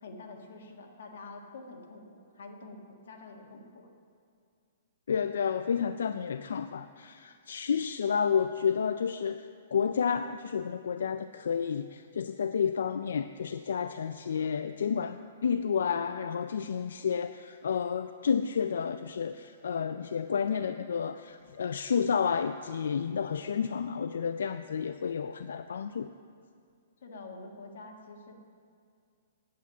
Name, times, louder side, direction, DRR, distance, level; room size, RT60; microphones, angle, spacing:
voice 1, 0.0-3.9 27.0-28.3, left 3 dB, 60° left, 1 dB, 1.6 m, -47 dB
voice 2, 5.1-26.1, left 7 dB, 85° left, 10 dB, 0.3 m, -31 dB
9.3 x 8.6 x 7.2 m, 2.3 s
hypercardioid pair, 180°, 0 cm